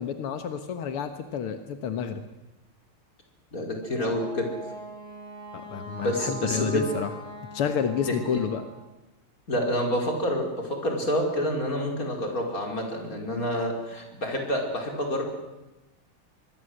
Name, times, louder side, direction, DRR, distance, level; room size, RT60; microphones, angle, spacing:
voice 1, 0.0-2.2 5.5-7.1 7.5-8.6, left 7 dB, 90° left, 8 dB, 2.2 m, -30 dB
voice 2, 3.5-4.5 6.0-6.8 8.1-8.4 9.5-15.2, equal, 40° left, 2 dB, 5.5 m, -28 dB
Wind instrument woodwind instrument, 3.8-8.8, right 1 dB, 40° right, 6.3 m, -41 dB
24.5 x 21.5 x 8.0 m, 1.0 s
omnidirectional pair, 2.4 m